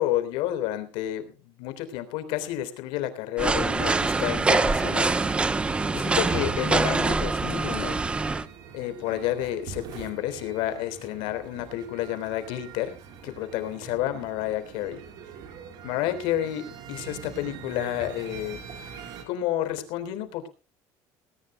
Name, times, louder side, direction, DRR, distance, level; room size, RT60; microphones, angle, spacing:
voice 1, 0.0-5.1 5.9-8.0 8.7-13.0 13.2-15.0 15.8-18.6 19.3-20.5, left 13 dB, 75° left, 10 dB, 3.5 m, -30 dB
sound 1, 3.4-8.5, right 3 dB, 15° right, 0.8 m, -24 dB
sound 2, 4.6-19.3, right 7 dB, 55° right, 4.4 m, -44 dB
19.5 x 19.0 x 2.2 m, 0.33 s
cardioid pair, 160°, 8 cm